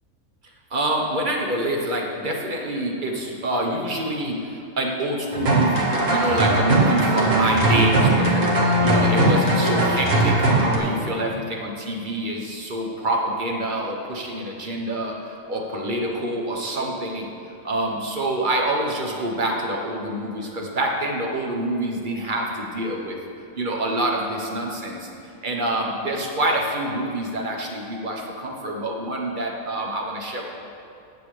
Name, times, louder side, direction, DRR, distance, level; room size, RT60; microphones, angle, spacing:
voice 1, 0.7-8.5 8.8-17.3 17.6-23.2 23.6-30.4, right 1 dB, 40° right, 0 dB, 1.2 m, -26 dB
sound 1, 5.3-10.8, right 1 dB, 60° right, 1.8 m, -19 dB
13.5 x 9.0 x 3.3 m, 2.7 s
omnidirectional pair, 1.5 m